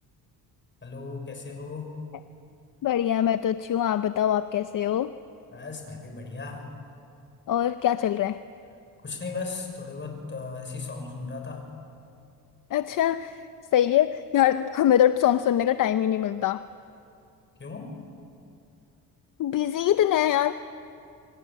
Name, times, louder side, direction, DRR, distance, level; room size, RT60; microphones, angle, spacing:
voice 1, 0.8-2.0 5.5-6.7 9.0-11.7 17.6-17.9, left 4 dB, 30° left, 3 dB, 6.3 m, -36 dB
voice 2, 2.8-5.1 7.5-8.4 12.7-13.4 13.7-16.6 19.4-20.5, left 11 dB, 60° left, 11 dB, 0.8 m, -23 dB
28.0 x 24.0 x 8.8 m, 2.6 s
cardioid pair, 110°, 37 cm